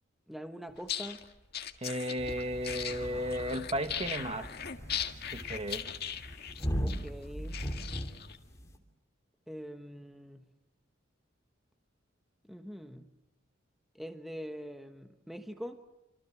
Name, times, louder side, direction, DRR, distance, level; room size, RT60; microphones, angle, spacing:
voice 1, 0.3-1.2 6.8-7.6 9.5-10.4 12.5-13.1 13.9-15.8, equal, ahead, 1.1 m, -43 dB
sound 1, 0.8-8.4, left 8 dB, 55° left, 1.8 m, -39 dB
voice 2, 1.8-4.5 5.3-5.9, equal, 30° right, 1.5 m, -34 dB
sound 2, 2.2-8.8, equal, 15° left, 3.1 m, -39 dB
28.0 x 26.5 x 7.6 m
head